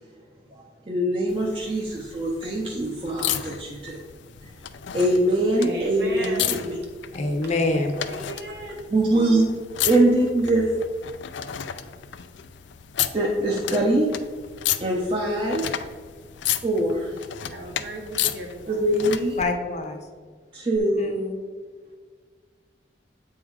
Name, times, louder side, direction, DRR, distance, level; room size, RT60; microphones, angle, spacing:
voice 1, 0.5-4.0 4.4-4.5 4.9-6.8 8.9-9.4 9.8-10.7 13.1-14.1 14.8-15.6 16.6-17.2 18.7-19.4 20.5-21.2, right 1 dB, 30° right, -2 dB, 0.7 m, -23 dB
sound 1, 1.3-19.4 20.7-20.8, left 11 dB, 85° left, 0.4 m, -33 dB
voice 2, 5.6-6.5 7.8-8.9 17.5-18.8, right 1 dB, 65° right, 0 dB, 1.6 m, -35 dB
voice 3, 7.1-8.0 19.4-20.1 21.0-21.4, left 2 dB, 40° left, 4 dB, 0.8 m, -26 dB
8.2 x 3.7 x 4.7 m, 1.5 s
head